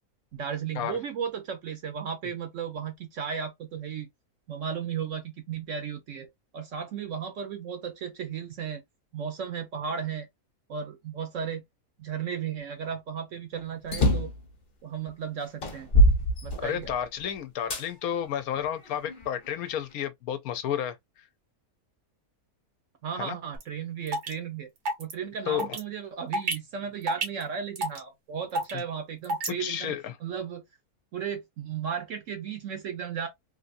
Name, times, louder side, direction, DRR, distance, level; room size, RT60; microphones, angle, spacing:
voice 1, 0.3-4.1 4.5-6.3 6.5-8.8 9.1-10.3 10.7-11.6 12.0-14.3 14.8-15.9 16.4-16.9 23.0-24.7 25.0-29.9 30.2-30.6 31.1-33.3, right 7 dB, 65° right, 0.9 m, -35 dB
sound 1, 13.8-14.4 15.1-15.2 15.6-17.0 17.7-17.8 18.6-19.6, equal, 40° left, 0.9 m, -23 dB
voice 2, 16.6-21.2 23.2-23.4 25.5-25.8 28.7-28.8 29.6-30.2, left 9 dB, 75° left, 1.1 m, -32 dB
sound 2, 23.6-23.7 24.1-24.3 24.8-25.1 25.6-25.8 26.3-26.5 27.1-27.4 27.8-28.0 28.5-28.8 29.2-29.5, right 2 dB, 90° right, 1.7 m, -28 dB
3.3 x 2.7 x 2.5 m
omnidirectional pair, 1.6 m